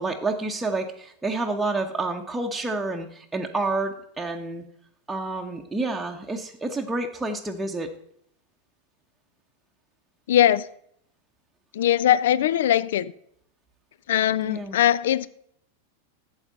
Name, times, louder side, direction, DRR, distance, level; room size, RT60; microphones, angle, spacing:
voice 1, 0.0-4.6 5.1-7.9 14.3-14.8, right 2 dB, 5° right, 0.9 m, -29 dB
voice 2, 10.3-10.7 11.7-13.1 14.1-15.3, left 11 dB, 60° left, 0.4 m, -21 dB
11.5 x 7.9 x 3.9 m
figure-of-eight pair, 90°, 0 cm